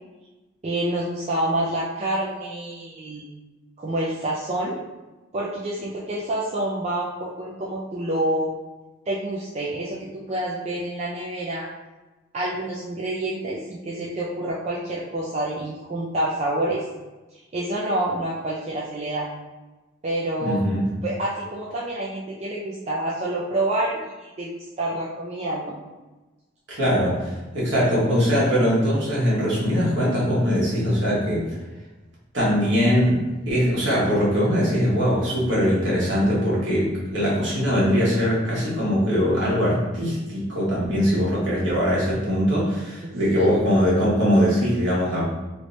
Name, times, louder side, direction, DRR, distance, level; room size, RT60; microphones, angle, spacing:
voice 1, 0.6-3.3 3.8-4.8 5.3-8.5 9.1-11.7 12.3-16.8 17.5-19.3 20.0-20.6 21.0-25.7 43.0-43.6, right 1 dB, 35° right, -5 dB, 0.4 m, -28 dB
voice 2, 20.4-20.8 26.7-31.5 32.3-45.2, equal, 65° right, -7 dB, 1.4 m, -21 dB
3.1 x 2.7 x 3.1 m, 1.1 s
head